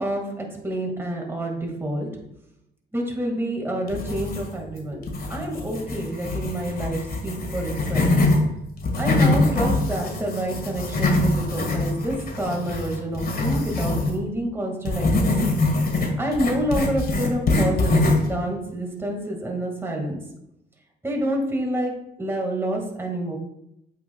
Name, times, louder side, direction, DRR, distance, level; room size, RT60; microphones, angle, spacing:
voice 1, 0.0-2.1 2.9-5.0 5.3-8.1 9.0-15.3 16.2-20.2 21.0-21.9 22.2-23.4, right 1 dB, 10° right, 0 dB, 1.8 m, -28 dB
sound 1, 3.9-4.7 5.0-8.4 8.8-14.1 14.8-18.3, left 2 dB, 50° left, 1.7 m, -23 dB
8.4 x 6.3 x 2.2 m, 0.82 s
cardioid pair, 90°, 20 cm